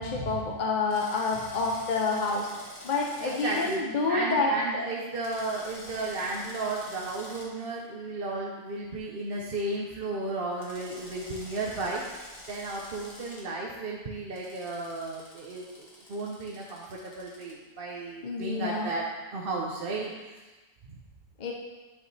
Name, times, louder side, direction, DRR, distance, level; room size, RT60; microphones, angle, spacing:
voice 1, 0.0-2.5 2.8-4.9 18.2-18.9 21.4-21.5, left 3 dB, 45° left, -1 dB, 0.6 m, -28 dB
Drill, 0.9-3.8 5.2-7.5 10.6-13.4 14.3-17.5, left 1 dB, 25° left, 1.2 m, -47 dB
voice 2, 3.2-19.1 19.3-20.3, right 2 dB, 45° right, -3 dB, 0.9 m, -34 dB
11.0 x 5.2 x 3.3 m, 1.2 s
omnidirectional pair, 1.6 m